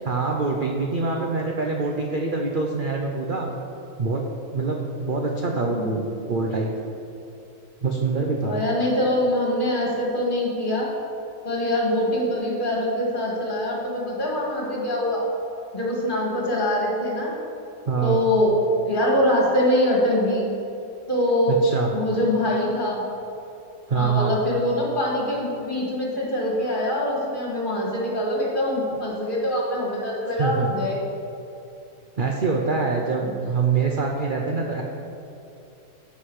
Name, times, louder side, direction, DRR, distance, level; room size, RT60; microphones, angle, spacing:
voice 1, 0.0-3.6 4.0-4.2 4.5-6.7 7.8-8.6 17.9-18.2 21.5-21.9 23.9-24.4 30.4-30.7 32.2-34.8, right 4 dB, 45° right, 0 dB, 0.7 m, -25 dB
voice 2, 8.4-10.9 11.4-15.2 15.7-17.3 18.0-18.5 18.8-20.5 21.1-21.6 21.9-23.0 23.9-31.0 33.2-33.3, left 1 dB, 30° left, -4 dB, 2.2 m, -24 dB
13.5 x 6.1 x 4.8 m, 2.8 s
omnidirectional pair, 1.7 m